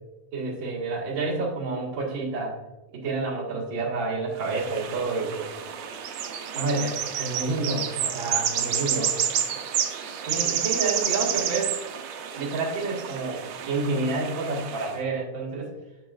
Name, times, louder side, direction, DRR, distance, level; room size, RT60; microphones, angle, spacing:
voice 1, 0.3-2.6 2.9-5.6 6.5-9.2 10.3-11.7 12.4-15.7, right 3 dB, 45° right, -4 dB, 2.1 m, -29 dB
sound 1, 4.4-15.0, right 9 dB, 75° right, 1.7 m, -30 dB
8.5 x 6.1 x 2.4 m, 1.1 s
omnidirectional pair, 3.4 m